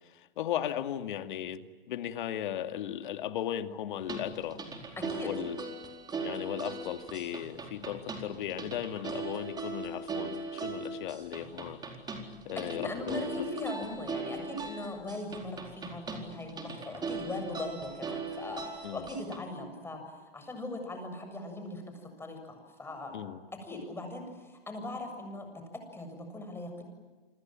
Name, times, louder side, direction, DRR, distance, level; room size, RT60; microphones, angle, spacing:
voice 1, 0.4-1.6 1.9-4.6 5.2-5.6 6.2-11.8 12.5-13.4 18.8-19.1 23.1-23.4, left 10 dB, 55° left, 8 dB, 2.3 m, -36 dB
sound 1, 4.0-19.4, right 3 dB, 15° right, 4.5 m, -39 dB
voice 2, 5.0-5.3 12.6-23.2 23.5-26.8, left 2 dB, 10° left, 5 dB, 7.3 m, -40 dB
29.5 x 26.0 x 7.6 m, 1.3 s
hypercardioid pair, 125°, 30 cm